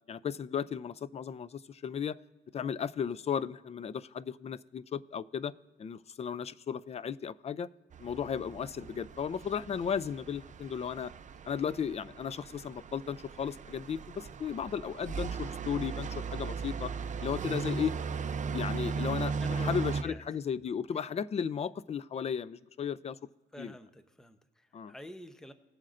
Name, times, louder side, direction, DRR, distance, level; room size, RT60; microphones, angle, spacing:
voice 1, 0.1-2.2 2.5-5.5 5.8-7.7 8.0-11.1 11.5-16.9 17.2-17.9 18.5-23.2 23.6-23.7 24.7-24.9, left 7 dB, 30° left, 17 dB, 0.4 m, -35 dB
sound 1, 7.9-20.0, right 5 dB, 40° right, 0.6 m, -37 dB
voice 2, 19.4-20.2 23.5-25.5, left 1 dB, 5° left, 9 dB, 0.7 m, -47 dB
19.0 x 7.5 x 2.5 m, 1.2 s
cardioid pair, 90°, 20 cm